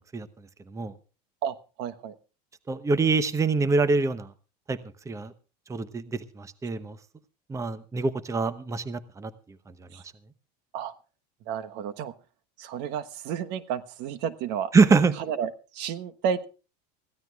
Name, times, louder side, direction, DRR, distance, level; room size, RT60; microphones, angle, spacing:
voice 1, 1.4-2.1 9.9-10.0 10.7-10.9 11.5-12.1 12.6-14.7 15.3-16.5, right 8 dB, 60° right, 11 dB, 1.2 m, -31 dB
voice 2, 2.7-4.3 4.7-4.8 5.1-5.3 5.7-7.0 7.5-9.3 14.7-15.1, right 4 dB, 15° right, 14 dB, 0.9 m, -24 dB
24.5 x 15.0 x 2.4 m, 0.34 s
supercardioid pair, 120°, 20 cm